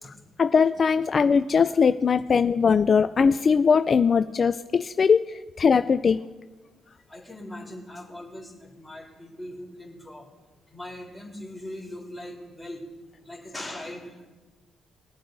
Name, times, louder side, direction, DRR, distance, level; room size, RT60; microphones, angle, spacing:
voice 1, 0.0-6.2, left 6 dB, 45° left, 11 dB, 0.3 m, -21 dB
voice 2, 7.1-10.2 10.7-12.8 13.2-14.3, left 1 dB, ahead, -4 dB, 3.6 m, -40 dB
22.5 x 7.7 x 2.7 m, 1.3 s
cardioid pair, 90°, 0 cm